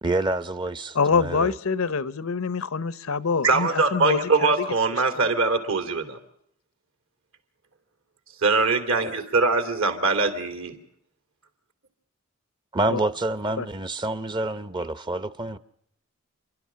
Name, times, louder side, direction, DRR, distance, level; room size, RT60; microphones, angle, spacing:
voice 1, 0.0-1.5 12.7-15.6, right 2 dB, 20° right, 0.7 m, -27 dB
voice 2, 0.9-4.7 12.9-13.0 13.6-13.7, left 5 dB, 80° left, 0.9 m, -25 dB
voice 3, 3.4-6.2 8.4-10.7, right 3 dB, 70° right, 2.8 m, -22 dB
29.5 x 12.0 x 7.5 m
head